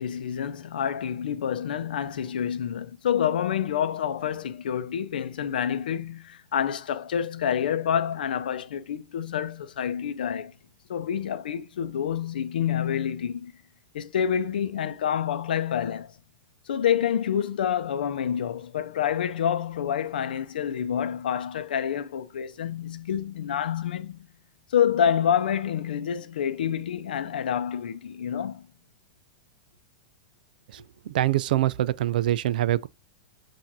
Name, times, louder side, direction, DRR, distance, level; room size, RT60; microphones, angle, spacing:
voice 1, 0.0-10.5 10.9-13.5 13.9-16.1 16.7-24.3 24.7-28.6, left 9 dB, 85° left, 0.6 m, -28 dB
voice 2, 30.7-32.9, right 13 dB, 75° right, 0.3 m, -25 dB
7.5 x 2.5 x 2.7 m
hypercardioid pair, 125°, 5 cm